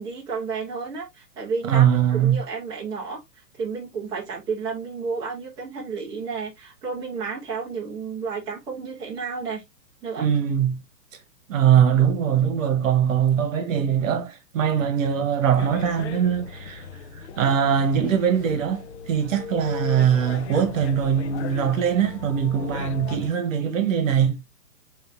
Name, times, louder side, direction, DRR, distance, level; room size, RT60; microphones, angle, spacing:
voice 1, 0.0-3.2 3.5-9.6 10.0-10.2, right 5 dB, 10° right, 0.7 m, -31 dB
voice 2, 1.7-2.4 10.2-10.8 11.5-16.8 17.4-24.4, right 8 dB, 55° right, 1.2 m, -21 dB
sound 1, 15.6-23.3, left 7 dB, 45° left, 0.5 m, -37 dB
6.9 x 2.8 x 2.4 m
hypercardioid pair, 145°, 48 cm